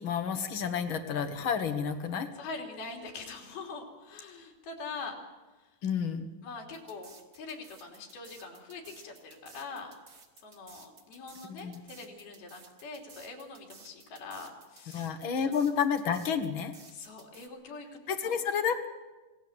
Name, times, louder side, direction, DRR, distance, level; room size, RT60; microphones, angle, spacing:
voice 1, 0.0-2.3 5.8-6.3 11.6-11.8 14.9-16.7 18.1-18.9, left 7 dB, 60° left, 8 dB, 1.3 m, -30 dB
voice 2, 2.4-5.2 5.5-5.8 6.4-9.9 10.4-15.5 16.9-18.4, left 4 dB, 85° left, 2 dB, 5.0 m, -44 dB
sound 1, 6.7-17.5, right 4 dB, 35° right, 2.3 m, -54 dB
26.5 x 18.5 x 8.0 m, 1.2 s
omnidirectional pair, 4.3 m